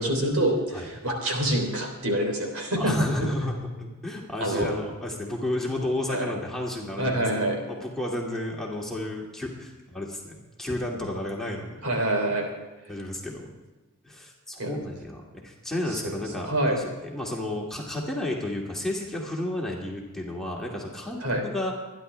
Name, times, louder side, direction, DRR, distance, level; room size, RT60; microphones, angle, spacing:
voice 1, 0.0-3.0 4.4-4.7 6.1-6.3 7.0-7.6 11.8-12.5 14.6-14.8 16.0-16.1 16.4-16.8 21.2-21.4, right 1 dB, 75° right, 2 dB, 3.6 m, -26 dB
voice 2, 2.8-7.1 7.5-11.9 12.9-13.5 14.0-21.7, left 1 dB, ahead, -2 dB, 2.3 m, -32 dB
26.0 x 10.5 x 3.4 m, 1.2 s
head